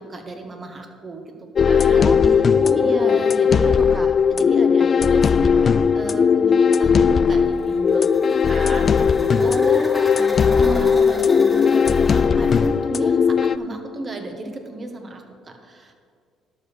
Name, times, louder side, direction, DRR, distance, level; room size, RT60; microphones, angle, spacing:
voice 1, 0.0-1.3 1.6-2.4 2.7-3.8 4.3-8.2 8.5-9.9 10.5-15.9, right 2 dB, 35° right, 5 dB, 1.6 m, -34 dB
sound 1, 1.5-13.6, left 6 dB, 45° left, 0.3 m, -17 dB
voice 2, 2.0-3.2 3.5-4.1 9.4-10.9, right 2 dB, 15° right, 6 dB, 0.5 m, -31 dB
sound 2, 7.5-12.7, left 1 dB, 5° left, 1.8 m, -37 dB
12.0 x 5.5 x 6.8 m, 2.1 s
supercardioid pair, 80°, 0 cm